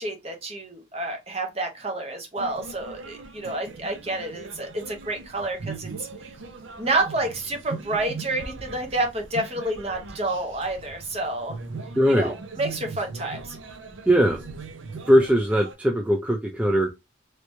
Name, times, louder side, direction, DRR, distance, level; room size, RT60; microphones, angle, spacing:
voice 1, 0.0-6.1 6.8-11.5 12.1-13.6, right 2 dB, 30° right, 1.0 m, -29 dB
sound 1, 2.4-15.7, right 4 dB, 80° right, 0.6 m, -40 dB
voice 2, 12.0-12.3 14.1-14.4 15.1-16.9, equal, 5° right, 0.3 m, -20 dB
3.2 x 3.0 x 2.6 m
head